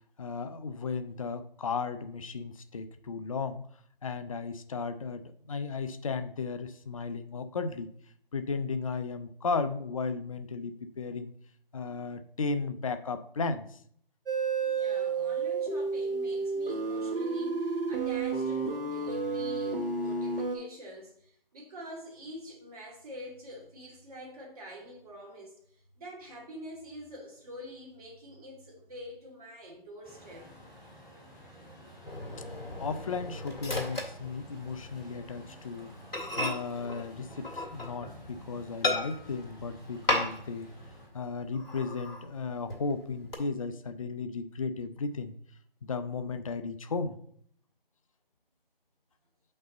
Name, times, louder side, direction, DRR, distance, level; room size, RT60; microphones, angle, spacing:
voice 1, 0.2-3.6 4.0-7.9 8.3-11.3 11.7-13.8 32.8-35.9 36.4-40.7 41.1-45.4 45.8-47.2, left 4 dB, 35° left, 0.5 m, -35 dB
sound 1, 14.3-20.6, right 4 dB, 65° right, 1.6 m, -31 dB
voice 2, 14.6-30.5, equal, 40° right, 2.7 m, -46 dB
Truck, 30.0-41.1, equal, ahead, 3.2 m, -51 dB
Microwave oven, 32.0-34.9 35.3-35.5 35.8-35.9 36.1-38.2 38.8-39.4 40.1-40.7 40.9-41.0 41.5-42.3 42.7-43.3, left 2 dB, 80° left, 2.2 m, -34 dB
7.7 x 5.4 x 3.9 m
figure-of-eight pair, 155°, 29 cm